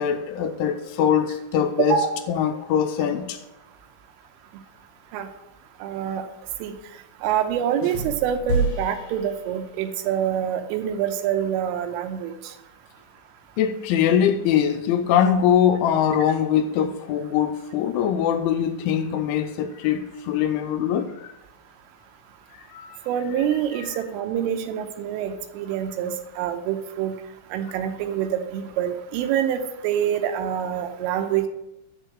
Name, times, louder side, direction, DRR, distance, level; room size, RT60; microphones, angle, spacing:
voice 1, 0.0-2.0 2.3-3.4 13.6-21.3 22.7-22.9, left 9 dB, 85° left, 2.9 m, -22 dB
voice 2, 5.8-6.2 6.6-6.8 7.2-12.5 23.1-27.1 27.5-31.5, right 9 dB, 80° right, 3.2 m, -26 dB
sound 1, 7.8-10.0, right 2 dB, 45° left, 1.8 m, -29 dB
11.5 x 4.5 x 6.4 m
omnidirectional pair, 5.9 m